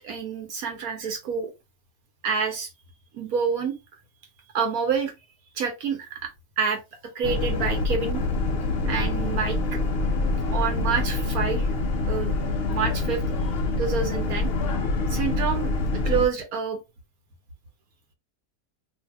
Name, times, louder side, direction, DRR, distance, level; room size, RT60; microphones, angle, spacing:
voice 1, 0.0-1.5 2.2-2.7 3.1-3.8 4.5-5.1 5.5-6.3 6.6-8.2 8.9-9.8 10.5-11.7 12.1-12.3 12.7-13.2 13.8-14.5 15.1-15.7 16.0-16.8, right 6 dB, 65° right, 1.1 m, -27 dB
Boat Water vehicle, 7.2-16.3, left 3 dB, 80° left, 0.5 m, -26 dB
2.7 x 2.6 x 3.2 m
omnidirectional pair, 1.8 m